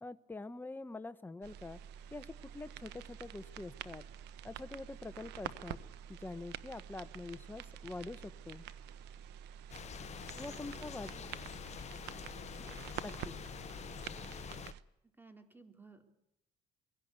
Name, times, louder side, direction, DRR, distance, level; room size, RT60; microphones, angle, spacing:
voice 1, 0.0-1.8 2.1-4.1 4.4-5.8 6.1-8.7 10.4-11.1 13.0-13.4, left 2 dB, 10° left, 11 dB, 1.0 m, -45 dB
sound 1, 1.4-14.8, right 10 dB, 85° right, 1.1 m, -48 dB
sound 2, 9.7-14.7, left 9 dB, 40° left, 0.7 m, -46 dB
voice 2, 10.4-11.3 12.6-12.8 15.2-16.0, right 3 dB, 10° right, 6 dB, 3.4 m, -58 dB
23.0 x 17.0 x 8.2 m, 0.85 s
cardioid pair, 110°, 17 cm